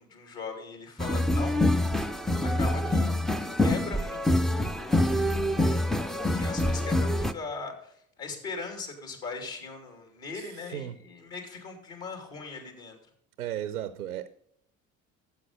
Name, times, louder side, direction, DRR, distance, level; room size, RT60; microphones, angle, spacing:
voice 1, 0.0-1.7 2.4-3.2 3.6-13.0, left 4 dB, 55° left, 2.9 m, -40 dB
sound 1, 1.0-7.3, left 1 dB, ahead, 0.3 m, -26 dB
voice 2, 10.3-11.0 13.4-14.3, right 11 dB, 85° right, 0.5 m, -35 dB
12.0 x 7.6 x 5.3 m
figure-of-eight pair, 55°, 42 cm